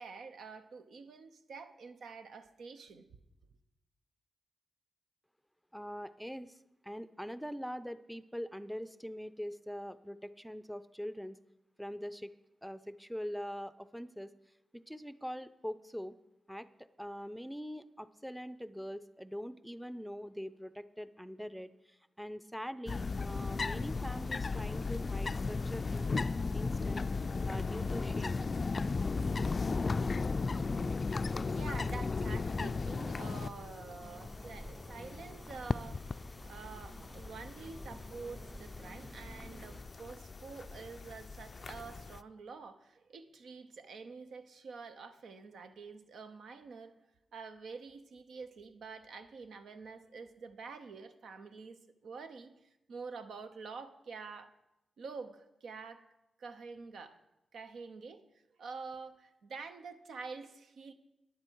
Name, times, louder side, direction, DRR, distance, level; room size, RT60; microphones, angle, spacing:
voice 1, 0.0-3.0 31.5-46.9 47.3-52.5 52.9-54.5 55.0-56.0 56.4-57.2 57.5-58.2 58.6-60.9, right 4 dB, 80° right, 8 dB, 0.7 m, -47 dB
voice 2, 5.7-6.6 6.8-11.4 11.8-12.3 12.6-14.3 14.7-16.2 16.5-26.1 26.5-28.4, equal, ahead, 14 dB, 0.5 m, -43 dB
sound 1, 22.9-42.2, left 4 dB, 45° left, 0.3 m, -36 dB
Engine, 23.9-30.4, right 1 dB, 45° right, 4.6 m, -63 dB
sound 2, 34.0-39.8, right 1 dB, 20° right, 1.7 m, -52 dB
11.5 x 9.6 x 4.6 m, 0.89 s
supercardioid pair, 50°, 0 cm